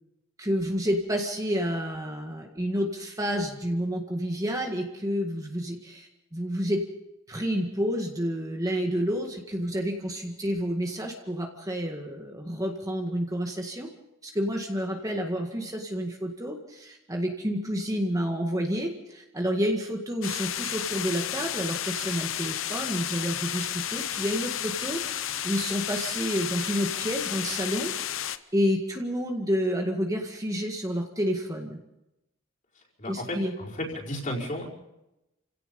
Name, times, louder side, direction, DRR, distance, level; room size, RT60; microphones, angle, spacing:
voice 1, 0.4-6.8 7.3-13.9 14.2-31.8 33.0-33.5, equal, 15° right, 2 dB, 1.9 m, -29 dB
sound 1, 20.2-28.4, left 11 dB, 75° left, 0.9 m, -32 dB
voice 2, 33.0-34.7, left 1 dB, 40° left, -3 dB, 5.0 m, -33 dB
29.0 x 17.0 x 5.4 m, 0.93 s
head